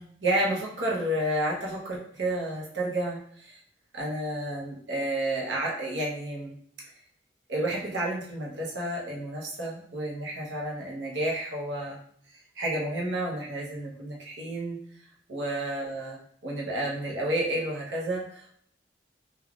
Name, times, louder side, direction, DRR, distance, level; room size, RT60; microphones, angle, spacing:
voice 1, 0.0-3.6 3.9-6.6 7.5-12.0 12.6-14.8 15.3-18.5, right 1 dB, 90° right, -4 dB, 0.8 m, -31 dB
3.4 x 2.3 x 2.3 m, 0.63 s
head